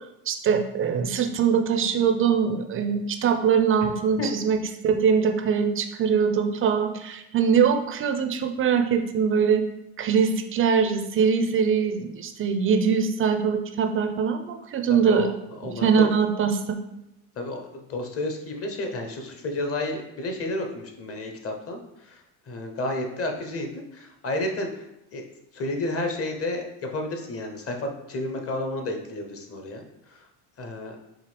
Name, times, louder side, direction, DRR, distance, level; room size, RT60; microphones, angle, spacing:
voice 1, 0.3-9.6 10.0-16.8, right 6 dB, 30° right, 5 dB, 0.4 m, -23 dB
voice 2, 14.9-15.3 15.6-16.1 17.4-22.2 22.5-24.8 25.1-25.2 25.5-29.8 30.1-30.2 30.6-31.0, left 2 dB, 30° left, 4 dB, 0.8 m, -31 dB
4.8 x 2.8 x 3.3 m, 0.87 s
supercardioid pair, 90°, 47 cm